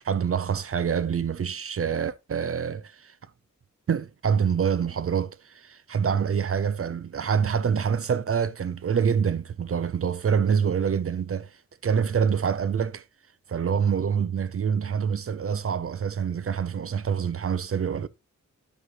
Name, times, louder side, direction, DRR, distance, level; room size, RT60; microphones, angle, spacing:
voice 1, 0.0-3.2 3.9-13.1 13.5-18.1, right 7 dB, 50° right, 0.5 m, -26 dB
10.5 x 7.8 x 2.8 m
wide cardioid pair, 110°, 30 cm